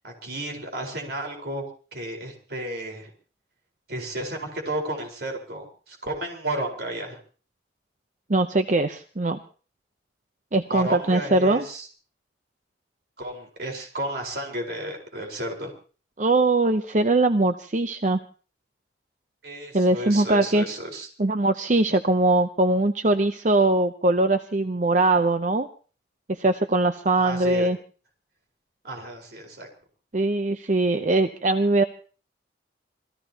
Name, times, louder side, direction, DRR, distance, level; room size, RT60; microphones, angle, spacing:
voice 1, 0.0-1.6 1.9-3.1 3.9-7.2 10.7-11.9 13.2-15.7 19.4-21.1 27.1-27.7 28.8-29.7, right 1 dB, 55° right, 1 dB, 4.6 m, -32 dB
voice 2, 8.3-9.4 10.5-11.7 16.2-18.2 19.7-20.6 21.2-25.7 26.3-27.8 30.1-31.8, right 2 dB, 40° right, 8 dB, 0.7 m, -21 dB
27.0 x 17.5 x 2.9 m, 0.39 s
head